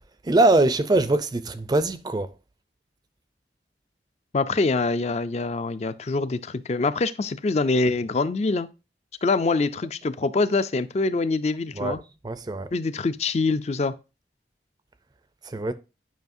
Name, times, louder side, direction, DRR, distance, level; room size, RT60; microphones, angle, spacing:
voice 1, 0.2-2.3 11.8-12.0 12.2-12.7 15.5-15.7, right 2 dB, 25° right, 0.4 m, -22 dB
voice 2, 4.3-8.7 9.2-12.0 12.7-13.9, left 3 dB, 40° left, 0.4 m, -24 dB
9.3 x 5.5 x 2.6 m
head